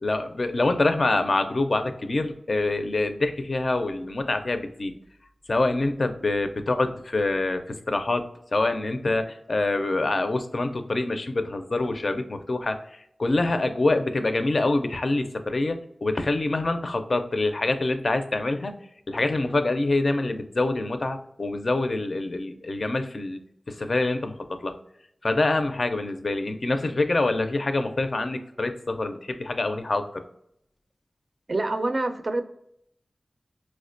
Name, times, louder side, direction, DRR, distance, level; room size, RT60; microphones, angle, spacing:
voice 1, 0.0-4.9 5.5-18.7 19.1-23.4 23.7-24.7 25.2-30.2, left 2 dB, 55° left, 8 dB, 0.4 m, -26 dB
voice 2, 31.5-32.4, right 2 dB, 50° right, 8 dB, 0.4 m, -26 dB
4.4 x 2.1 x 2.5 m, 0.72 s
wide cardioid pair, 65°, 0 cm